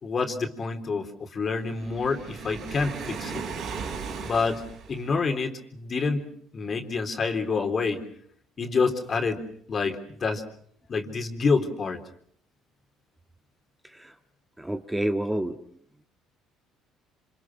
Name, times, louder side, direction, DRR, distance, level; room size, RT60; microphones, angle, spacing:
voice 1, 0.0-3.4 4.2-4.6 4.9-6.3 6.5-8.0 8.6-10.4 10.9-12.0, left 4 dB, 40° left, 6 dB, 3.7 m, -27 dB
Waves surf, 1.7-5.2, right 5 dB, 65° right, 5.4 m, -37 dB
voice 2, 14.6-15.5, right 1 dB, 10° right, 5 dB, 1.8 m, -28 dB
27.5 x 26.5 x 6.2 m, 0.63 s
supercardioid pair, 80°, 0 cm